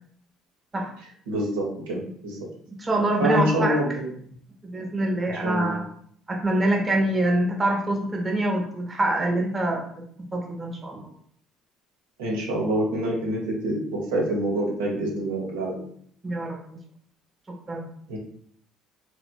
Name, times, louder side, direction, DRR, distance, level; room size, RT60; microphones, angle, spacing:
voice 1, 1.3-2.5 3.2-4.1 5.4-5.8 12.2-15.8 18.1-18.2, right 1 dB, 85° right, -3 dB, 0.8 m, -26 dB
voice 2, 2.8-3.8 4.6-5.8 6.3-10.0 10.3-11.0 16.2-16.8 17.7-17.8, right 1 dB, 25° right, 0 dB, 0.7 m, -25 dB
3.0 x 2.5 x 2.2 m, 0.63 s
hypercardioid pair, 60°, 0 cm